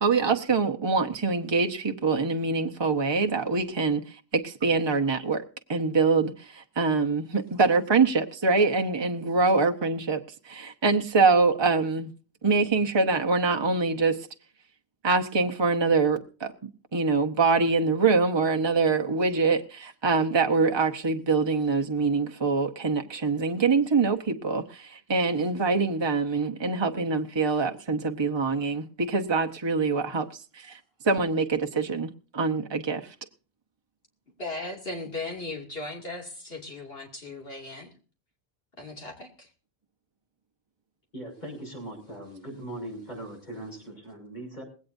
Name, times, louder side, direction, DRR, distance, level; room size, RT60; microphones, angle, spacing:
voice 1, 0.0-4.0 4.3-5.4 5.7-12.1 12.4-14.2 15.0-16.5 16.9-30.3 30.5-30.8 31.0-33.1, right 4 dB, 25° right, 0.9 m, -24 dB
voice 2, 34.4-37.9 38.8-39.5, left 2 dB, 65° left, 2.8 m, -37 dB
voice 3, 41.1-44.6, right 1 dB, 45° left, 6.5 m, -40 dB
20.0 x 17.0 x 2.7 m
omnidirectional pair, 1.1 m